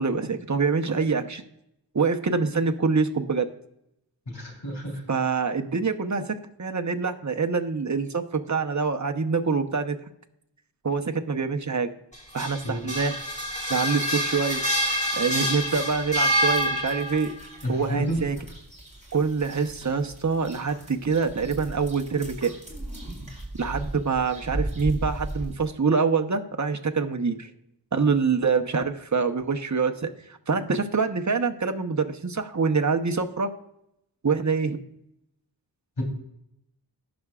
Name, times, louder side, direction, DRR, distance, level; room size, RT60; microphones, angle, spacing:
voice 1, 0.0-1.4 1.9-3.5 5.1-10.0 10.8-11.9 12.3-13.2 13.7-14.6 15.1-17.3 17.7-18.4 19.1-22.5 23.6-27.5 27.9-30.1 30.5-33.5 34.2-34.8, right 5 dB, 40° right, 5 dB, 0.9 m, -25 dB
voice 2, 4.3-5.0 12.6-12.9 17.6-18.3 36.0-36.1, equal, 65° left, -1 dB, 3.6 m, -29 dB
sound 1, 12.1-17.3, equal, 15° left, 1.9 m, -27 dB
sound 2, 15.4-25.7, right 1 dB, 15° right, 3.2 m, -38 dB
17.5 x 6.1 x 2.4 m, 0.77 s
wide cardioid pair, 50°, 44 cm